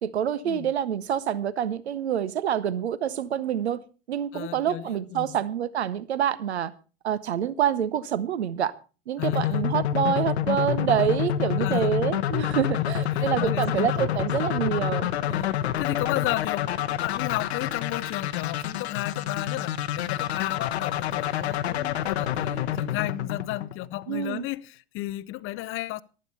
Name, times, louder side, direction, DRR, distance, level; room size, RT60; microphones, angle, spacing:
voice 1, 0.0-3.8 4.1-6.7 7.0-8.7 9.1-15.1 24.1-24.4, right 9 dB, 75° right, 0.8 m, -27 dB
voice 2, 4.3-5.4 9.2-9.7 11.6-12.0 12.7-14.0 15.2-26.0, left 17 dB, 40° left, 0.6 m, -34 dB
sound 1, 9.2-24.1, left 10 dB, 70° left, 1.0 m, -28 dB
15.0 x 11.5 x 4.0 m
figure-of-eight pair, 75°, 33 cm